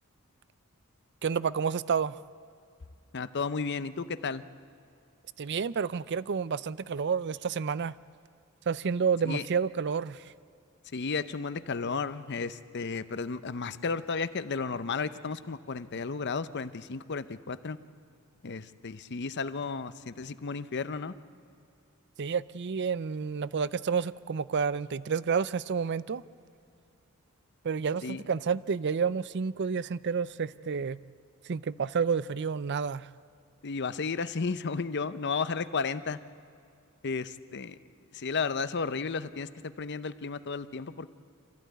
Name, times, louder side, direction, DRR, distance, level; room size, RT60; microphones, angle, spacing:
voice 1, 1.2-2.2 5.4-8.0 8.7-10.3 22.2-26.2 27.6-31.0 31.4-33.1, right 6 dB, 50° right, 18 dB, 0.5 m, -30 dB
voice 2, 3.1-4.4 9.2-9.5 10.9-17.8 18.4-21.1 28.0-28.4 33.6-36.2 37.0-37.8 38.1-41.1, left 4 dB, 50° left, 13 dB, 0.7 m, -33 dB
26.5 x 15.0 x 9.3 m, 2.4 s
head